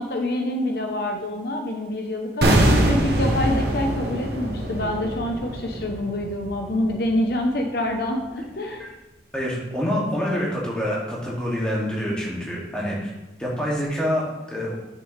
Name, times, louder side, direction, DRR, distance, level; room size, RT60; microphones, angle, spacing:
voice 1, 0.0-8.8, left 1 dB, 60° left, 3 dB, 0.9 m, -26 dB
sound 1, 2.4-7.4 7.7-7.8, right 1 dB, 65° right, 1.3 m, -23 dB
voice 2, 9.3-13.1 13.4-14.8, equal, 5° left, -6 dB, 2.3 m, -26 dB
10.5 x 6.8 x 3.3 m, 1.0 s
head